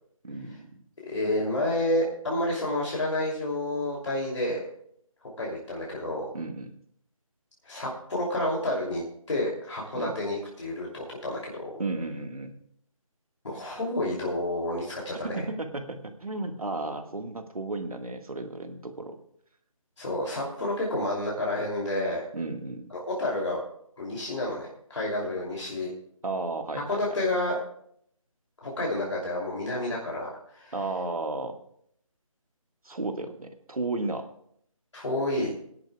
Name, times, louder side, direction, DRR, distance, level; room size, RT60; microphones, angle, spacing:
voice 1, 0.2-0.7 6.3-6.7 9.9-10.1 11.8-12.6 15.2-19.2 22.3-22.9 26.2-27.0 30.7-31.6 32.8-34.2, right 2 dB, 85° right, 5 dB, 1.7 m, -33 dB
voice 2, 1.0-4.7 5.4-6.3 7.6-11.7 13.4-15.4 20.0-22.2 22.9-23.6 24.0-25.9 26.9-27.6 28.6-30.7 34.9-35.5, left 1 dB, 55° left, -3 dB, 2.9 m, -30 dB
21.5 x 10.5 x 2.3 m, 0.67 s
figure-of-eight pair, 165°, 18 cm